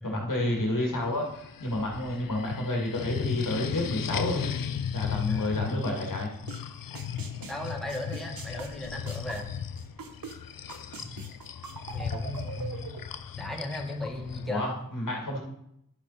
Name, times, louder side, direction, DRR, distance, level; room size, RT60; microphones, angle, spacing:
voice 1, 0.0-4.5 4.9-6.3 14.5-15.4, left 1 dB, 70° left, 0 dB, 2.2 m, -30 dB
sound 1, 0.8-14.5, left 8 dB, 85° left, 0.6 m, -36 dB
voice 2, 5.3-5.8 7.5-9.5 11.0-11.1 11.9-13.0 13.4-14.6, left 1 dB, ahead, 0 dB, 1.5 m, -36 dB
sound 2, 6.5-6.6 6.9-10.3 10.7-13.0, right 5 dB, 80° right, 1.0 m, -42 dB
10.5 x 7.2 x 4.1 m, 0.77 s
wide cardioid pair, 70°, 34 cm